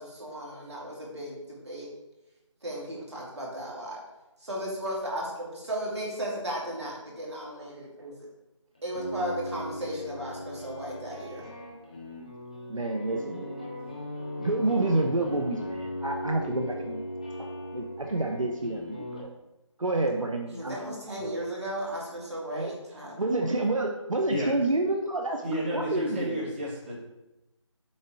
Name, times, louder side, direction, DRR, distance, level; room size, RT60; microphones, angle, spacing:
voice 1, 0.0-1.9 2.6-4.0 4.4-8.1 8.8-11.5 20.5-23.6, right 1 dB, 55° right, -4 dB, 2.4 m, -35 dB
sound 1, 8.8-19.2, left 1 dB, 15° left, 0.6 m, -38 dB
voice 2, 12.7-13.8 14.4-17.0 17.4-17.5 17.7-19.3 19.8-21.0 21.2-21.4 22.5-22.7 23.2-25.4 25.7-26.4, right 2 dB, 80° right, 2 dB, 0.9 m, -29 dB
voice 3, 25.4-26.9, equal, 20° right, -9 dB, 2.5 m, -31 dB
7.3 x 3.9 x 4.8 m, 0.98 s
figure-of-eight pair, 165°, 17 cm